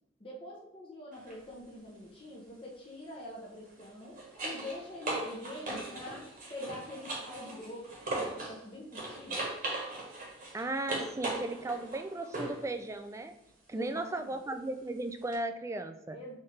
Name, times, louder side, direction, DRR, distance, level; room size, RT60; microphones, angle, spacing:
voice 1, 0.2-9.5 13.7-14.4 16.1-16.3, left 1 dB, 30° left, -4 dB, 1.0 m, -45 dB
sound 1, 1.1-1.4 3.7-8.6 8.9-12.7 15.3-15.4, right 2 dB, 45° right, 1.4 m, -38 dB
voice 2, 10.5-13.3 13.7-16.2, right 2 dB, 15° right, 7 dB, 0.3 m, -36 dB
4.3 x 3.6 x 3.2 m, 0.87 s
head